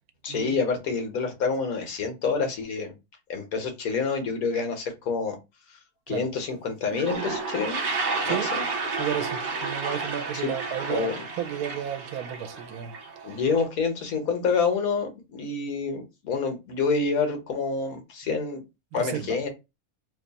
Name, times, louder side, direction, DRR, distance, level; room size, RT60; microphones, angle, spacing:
voice 1, 0.2-2.9 3.3-5.4 6.1-7.8 8.2-8.6 10.4-10.5 10.9-11.1 13.2-18.6 18.9-19.5, left 4 dB, 75° left, 1.4 m, -27 dB
Toilet flush, 6.5-6.6 6.8-13.6, right 4 dB, 60° right, 1.4 m, -31 dB
voice 2, 9.0-11.1 11.4-12.9 13.3-13.4 18.3-18.4 18.9-19.4, right 10 dB, 80° right, 1.1 m, -32 dB
3.1 x 2.3 x 3.9 m
omnidirectional pair, 1.5 m